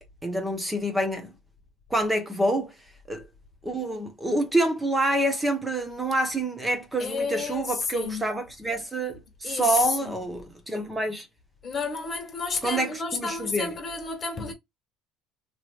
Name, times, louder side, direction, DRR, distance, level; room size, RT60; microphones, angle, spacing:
voice 1, 0.2-1.3 1.9-2.8 3.1-3.3 3.6-11.3 12.6-13.8, right 1 dB, 10° right, 1.0 m, -27 dB
voice 2, 7.0-8.3 9.4-10.1 11.6-14.5, left 4 dB, 25° left, 1.8 m, -31 dB
3.2 x 3.1 x 2.4 m
cardioid pair, 130°, 0 cm